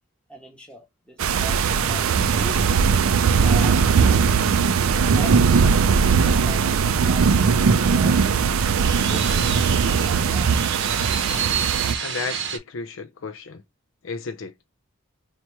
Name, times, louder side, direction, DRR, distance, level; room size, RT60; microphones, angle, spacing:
voice 1, 0.3-2.7 3.4-4.3 9.1-9.6 12.2-12.3, right 2 dB, 5° left, 1.0 m, -41 dB
sound 1, 1.2-12.0, right 5 dB, 75° right, 0.4 m, -19 dB
sound 2, 7.4-12.6, right 7 dB, 55° right, 0.8 m, -30 dB
voice 2, 12.0-13.6 14.0-14.5, left 4 dB, 65° left, 0.5 m, -33 dB
2.9 x 2.9 x 4.5 m
head